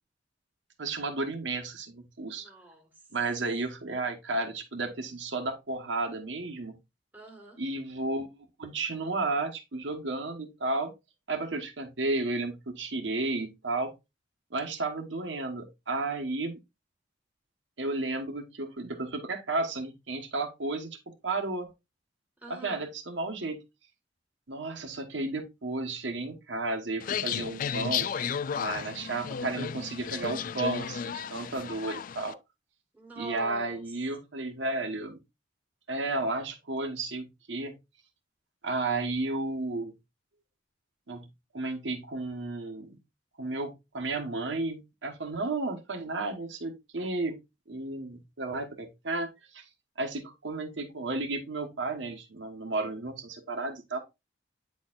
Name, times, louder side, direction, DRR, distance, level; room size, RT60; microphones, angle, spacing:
voice 1, 0.8-2.5 3.1-6.8 7.6-10.9 11.3-13.9 14.5-16.6 17.8-21.7 22.5-23.6 24.5-28.1 28.5-32.4 33.2-35.2 35.9-37.8 38.6-39.9 41.1-41.3 41.5-43.0 43.4-47.4 47.7-49.6 50.0-54.0, right 2 dB, 70° right, 1.1 m, -33 dB
voice 2, 2.4-2.9 7.1-7.6 22.4-22.8 32.9-33.8, right 2 dB, 10° right, 1.6 m, -44 dB
sound 1, 27.0-32.3, left 7 dB, 45° left, 0.3 m, -33 dB
9.1 x 4.4 x 2.4 m
head